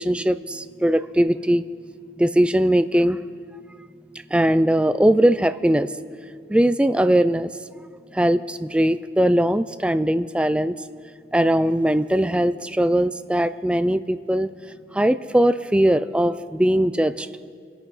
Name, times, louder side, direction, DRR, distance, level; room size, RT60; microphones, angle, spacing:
voice 1, 0.0-1.6 2.2-3.2 4.3-5.9 6.5-7.5 8.1-10.8 11.3-14.5 14.9-17.3, right 1 dB, 5° right, 13 dB, 0.3 m, -20 dB
27.0 x 9.2 x 5.5 m, 2.2 s
head